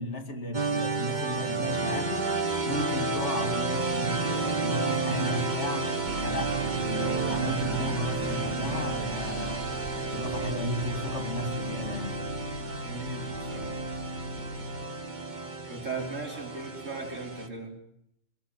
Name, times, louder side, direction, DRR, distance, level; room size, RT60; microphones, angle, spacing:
voice 1, 0.0-2.3 2.6-5.9 6.2-9.7 10.1-12.2, left 1 dB, 65° left, 2.6 m, -34 dB
sound 1, 0.5-17.5, right 3 dB, 40° right, 1.7 m, -31 dB
Organ, 4.5-15.4, left 1 dB, 30° left, 5.7 m, -42 dB
sound 2, 6.1-14.9, right 4 dB, 65° right, 1.7 m, -41 dB
voice 2, 12.8-13.9 15.7-17.8, right 3 dB, 85° right, 5.0 m, -38 dB
22.5 x 18.0 x 8.8 m
omnidirectional pair, 1.3 m